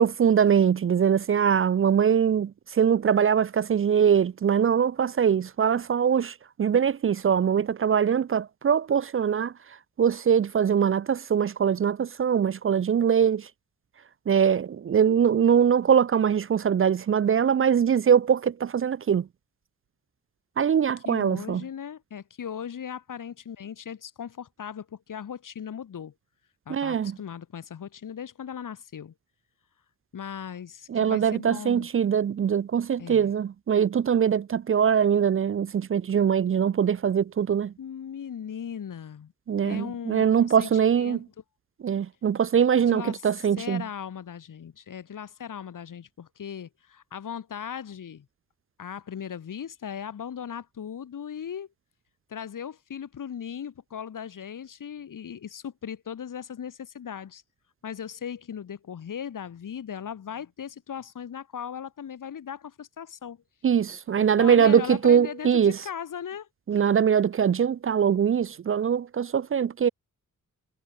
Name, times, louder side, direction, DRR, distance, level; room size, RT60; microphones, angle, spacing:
voice 1, 0.0-9.5 10.0-13.5 14.3-19.3 20.6-21.6 26.7-27.2 30.9-37.7 39.5-41.2 41.8-43.8 63.6-65.8 66.7-69.9, right 8 dB, 45° right, 0.5 m, -22 dB
voice 2, 21.0-26.1 26.7-29.1 30.1-31.9 33.0-33.3 37.8-39.3 39.6-40.7 41.0-41.2 42.9-43.2 43.6-48.2 48.8-51.7 52.3-57.4 57.8-63.4 64.4-66.8, left 8 dB, 80° left, 6.8 m, -38 dB
wide cardioid pair, 150°, 31 cm